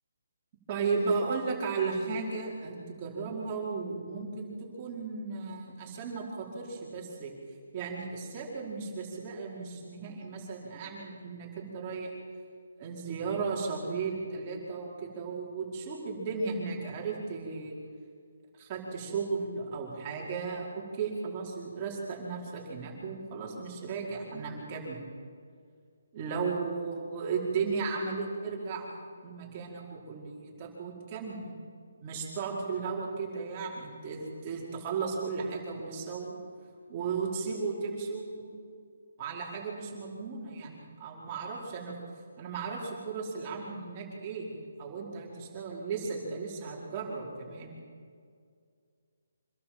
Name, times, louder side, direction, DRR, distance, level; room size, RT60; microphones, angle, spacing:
voice 1, 0.7-7.3 7.7-12.1 12.8-17.8 18.6-25.0 26.1-29.0 29.2-31.5 32.0-36.3 36.9-38.5 39.2-42.0 42.4-44.5 44.8-47.7, right 4 dB, 30° right, -3 dB, 5.1 m, -35 dB
26.0 x 12.5 x 7.9 m, 2.1 s
hypercardioid pair, 155°, 0 cm